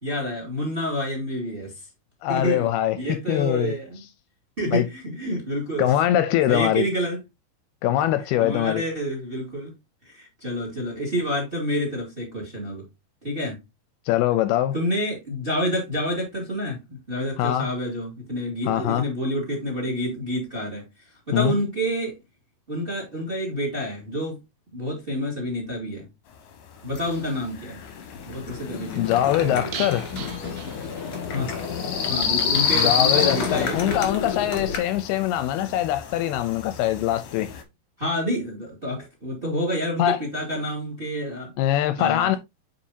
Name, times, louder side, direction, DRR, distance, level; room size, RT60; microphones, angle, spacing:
voice 1, 0.0-1.8 2.3-2.7 3.0-4.0 4.6-5.9 6.5-7.2 8.4-9.7 10.0-12.8 13.2-13.6 14.7-16.8 17.1-20.9 21.3-22.2 22.7-24.4 24.7-26.1 26.8-27.8 28.3-29.8 31.3-31.5 32.0-34.0 34.5-34.6 38.0-41.5 42.0-42.4, equal, 20° right, 1.8 m, -28 dB
voice 2, 2.2-3.8 4.7-4.9 5.8-6.9 7.8-8.8 14.1-14.8 17.4-17.7 18.7-19.0 21.3-21.6 29.0-30.0 32.7-37.5 40.0-40.2 41.6-42.4, left 12 dB, 80° left, 2.4 m, -23 dB
sound 1, 26.8-37.6, left 7 dB, 65° left, 2.0 m, -30 dB
sound 2, 26.9-27.4 27.8-34.8, left 5 dB, 45° left, 2.0 m, -32 dB
sound 3, 29.7-31.5 31.8-31.9 32.2-32.3, right 10 dB, 75° right, 2.6 m, -39 dB
8.5 x 5.2 x 2.7 m
omnidirectional pair, 4.8 m